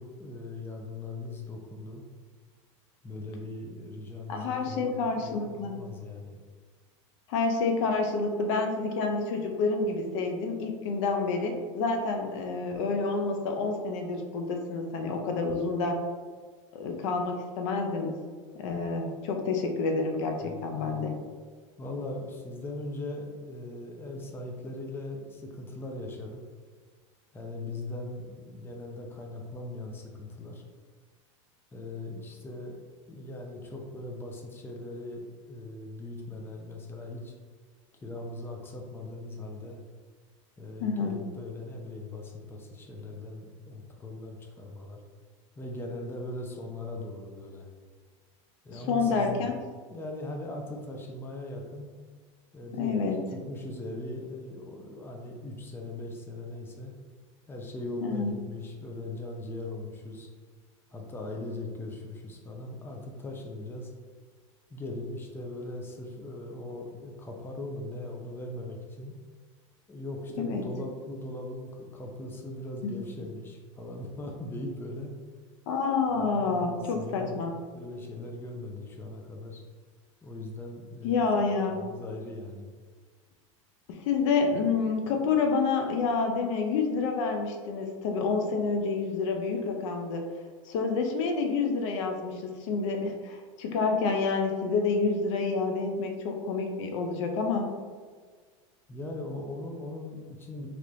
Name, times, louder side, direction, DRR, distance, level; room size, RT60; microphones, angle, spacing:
voice 1, 0.0-2.0 3.0-6.4 20.4-21.1 21.8-26.4 27.3-30.6 31.7-32.8 33.1-37.3 38.0-39.8 40.6-45.0 45.6-47.7 48.6-49.5 49.9-51.9 52.5-56.9 57.5-60.3 60.9-63.9 64.7-69.1 69.9-75.1 76.1-77.4 77.7-79.6 80.2-81.3 81.7-82.7 98.9-100.7, left 2 dB, 15° left, 1 dB, 0.5 m, -39 dB
voice 2, 4.3-5.8 7.3-16.0 16.7-18.2 18.6-21.1 40.8-41.2 48.7-49.5 52.8-53.2 58.0-58.3 70.4-70.7 72.8-72.9 75.7-77.5 81.0-82.0 83.9-90.3 90.6-97.7, left 4 dB, 70° left, 3 dB, 0.5 m, -28 dB
3.2 x 2.9 x 2.5 m, 1.5 s
hypercardioid pair, 105°, 17 cm